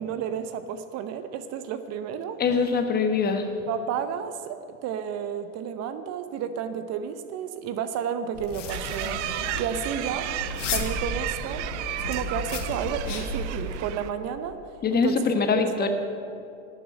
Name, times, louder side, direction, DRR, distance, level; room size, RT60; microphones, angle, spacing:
voice 1, 0.0-2.4 3.7-9.2 9.6-14.6 14.9-15.3 15.8-15.9, right 8 dB, 45° right, 10 dB, 0.9 m, -32 dB
voice 2, 2.4-3.4 10.6-10.7 14.8-15.9, left 5 dB, 25° left, 6 dB, 1.3 m, -23 dB
sound 1, 8.3-13.8, left 3 dB, 80° left, 1.7 m, -33 dB
sound 2, 8.7-14.1, right 13 dB, 70° right, 0.7 m, -34 dB
12.0 x 7.3 x 9.5 m, 2.6 s
hypercardioid pair, 100°, 37 cm